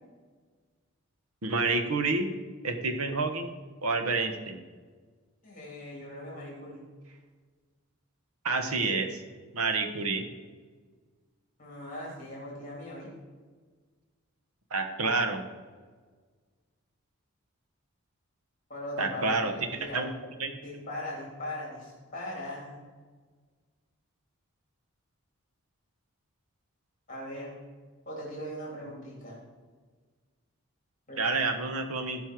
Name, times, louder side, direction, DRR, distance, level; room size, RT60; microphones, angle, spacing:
voice 1, 1.4-2.3 2.6-3.5 3.8-4.6 8.4-9.2 9.5-10.2 14.7-15.4 19.0-20.1 20.4-20.5 31.2-32.2, right 3 dB, 85° right, 6 dB, 1.2 m, -28 dB
voice 2, 5.4-6.8 11.6-13.1 18.7-22.9 27.1-27.6 28.0-29.4 31.1-31.3, left 1 dB, 35° left, -4 dB, 3.3 m, -40 dB
15.5 x 5.6 x 4.6 m, 1.5 s
head